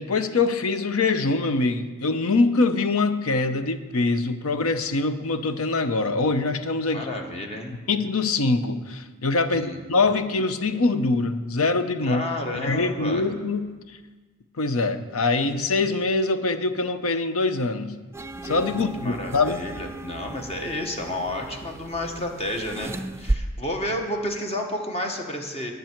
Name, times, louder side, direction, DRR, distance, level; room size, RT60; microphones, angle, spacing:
voice 1, 0.0-7.1 7.9-12.2 12.5-14.0 14.6-18.0 18.4-19.6, left 3 dB, 75° left, 10 dB, 0.7 m, -24 dB
voice 2, 6.9-7.8 9.5-9.8 12.0-13.2 18.7-25.7, left 1 dB, 30° left, 3 dB, 1.3 m, -31 dB
sound 1, 18.1-23.4, right 2 dB, 10° right, 0.4 m, -34 dB
19.0 x 6.8 x 4.5 m, 1.3 s
head